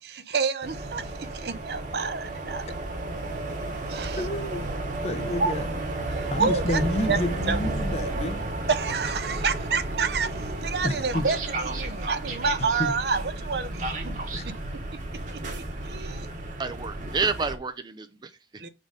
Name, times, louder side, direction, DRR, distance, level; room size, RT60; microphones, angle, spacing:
voice 1, 0.0-2.7 3.9-4.2 5.4-5.5 6.2-6.8 7.1-7.2 7.5-7.6 8.7-14.1 15.5-16.3 18.6-18.7, right 5 dB, 65° right, 0.6 m, -28 dB
sound 1, 0.6-17.6, right 2 dB, 45° right, 1.3 m, -32 dB
voice 2, 4.2-4.7 5.0-5.7 6.1-8.4 10.8-11.2 12.8-12.9 14.3-14.5, left 1 dB, 35° left, 0.6 m, -30 dB
voice 3, 16.3-18.6, right 4 dB, 25° right, 0.4 m, -30 dB
4.9 x 4.2 x 4.9 m
head